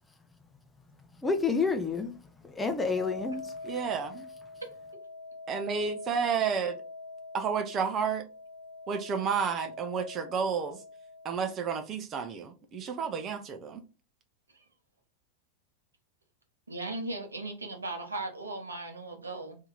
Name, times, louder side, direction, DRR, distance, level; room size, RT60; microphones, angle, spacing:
voice 1, 0.8-3.8, left 4 dB, 10° left, 0.6 m, -31 dB
sound 1, 2.9-11.6, left 3 dB, 85° left, 0.4 m, -44 dB
voice 2, 3.7-4.3 5.5-6.8 7.3-8.3 8.9-10.8 11.2-13.8, right 6 dB, 30° right, 0.6 m, -31 dB
voice 3, 16.7-19.6, right 2 dB, 75° right, 0.9 m, -37 dB
2.8 x 2.7 x 3.7 m
figure-of-eight pair, 90°, 0 cm